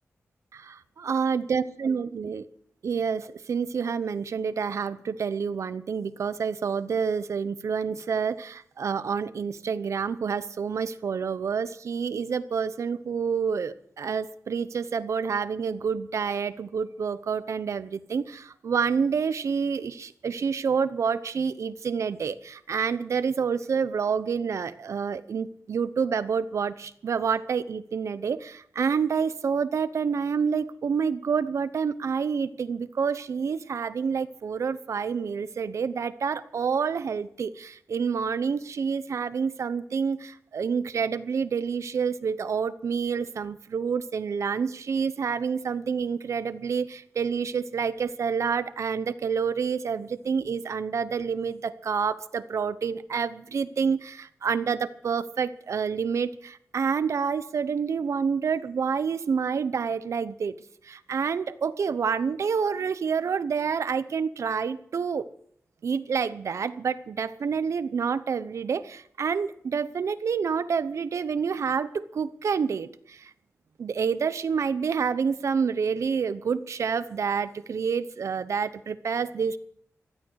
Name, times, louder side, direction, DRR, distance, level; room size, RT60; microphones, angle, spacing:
voice 1, 0.5-2.5 2.8-60.6 60.8-65.3 65.8-73.3 73.8-79.6, right 6 dB, 70° right, 14 dB, 0.8 m, -28 dB
16.0 x 12.0 x 6.4 m, 0.63 s
wide cardioid pair, 130°, 5 cm